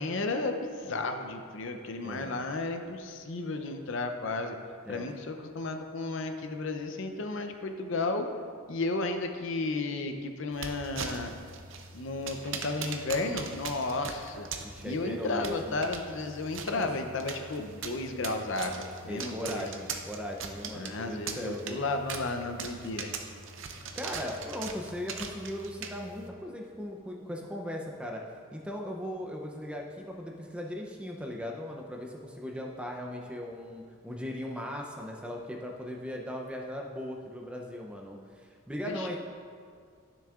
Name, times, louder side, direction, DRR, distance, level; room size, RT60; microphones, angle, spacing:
voice 1, 0.0-4.6 4.9-8.3 8.7-11.3 11.9-14.5 14.8-19.6 20.7-23.1 38.9-39.2, left 3 dB, 65° left, 6 dB, 0.6 m, -33 dB
voice 2, 2.0-2.4 4.9-5.0 14.6-15.8 16.8-17.0 19.1-21.8 23.9-28.2 28.5-38.2 38.7-39.2, left 1 dB, 5° right, 0 dB, 0.5 m, -38 dB
sound 1, 10.5-26.3, right 5 dB, 65° right, 0.6 m, -41 dB
12.0 x 6.9 x 2.4 m, 2.1 s
head